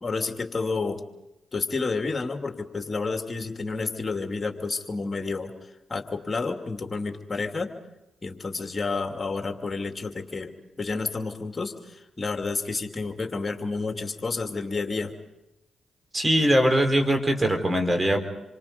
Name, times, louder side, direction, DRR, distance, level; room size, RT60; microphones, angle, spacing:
voice 1, 0.0-1.0 1.5-5.5 5.9-7.7 8.2-15.1, left 4 dB, 35° left, 5 dB, 2.7 m, -30 dB
voice 2, 16.1-18.2, equal, 25° right, 6 dB, 4.5 m, -21 dB
27.5 x 24.5 x 5.4 m, 0.97 s
hypercardioid pair, 40°, 0 cm